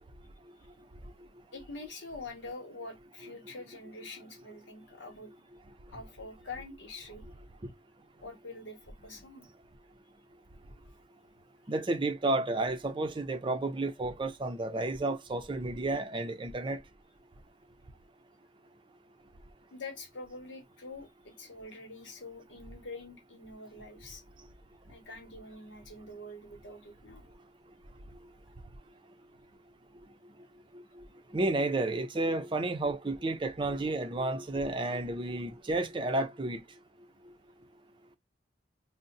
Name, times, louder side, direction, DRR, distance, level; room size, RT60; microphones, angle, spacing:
voice 1, 1.5-5.3 5.9-7.2 8.2-9.5 19.7-24.2 24.9-27.3, left 2 dB, 80° left, 1.1 m, -45 dB
voice 2, 11.7-16.8 31.3-36.6, right 2 dB, 25° right, 0.5 m, -31 dB
2.7 x 2.1 x 3.8 m
head